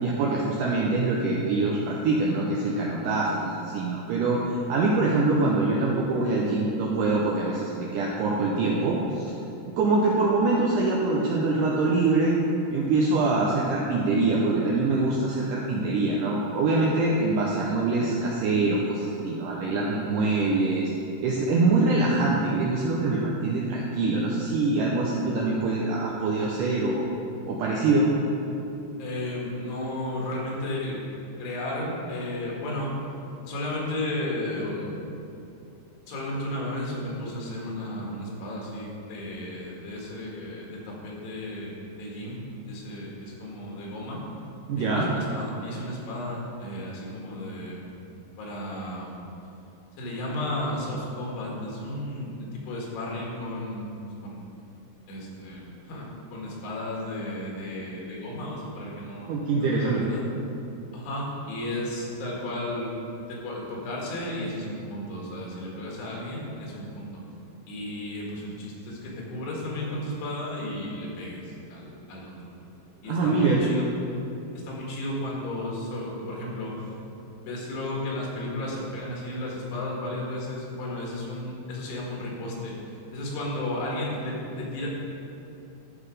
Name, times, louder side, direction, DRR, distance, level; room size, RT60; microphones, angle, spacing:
voice 1, 0.0-9.3 9.8-12.4 12.7-20.9 21.2-27.1 27.5-28.1 44.7-45.1 59.3-60.1 73.1-73.6, right 3 dB, 85° right, -3 dB, 1.9 m, -24 dB
voice 2, 29.0-31.0 31.4-33.0 33.5-34.9 36.1-44.2 44.8-48.0 48.4-49.2 50.0-53.9 54.2-54.5 55.1-60.3 60.9-62.9 63.3-67.1 67.7-72.7 73.0-73.9 74.6-82.7 83.1-84.9, left 1 dB, 85° left, -3 dB, 3.8 m, -34 dB
13.0 x 4.8 x 4.9 m, 2.8 s
omnidirectional pair, 4.7 m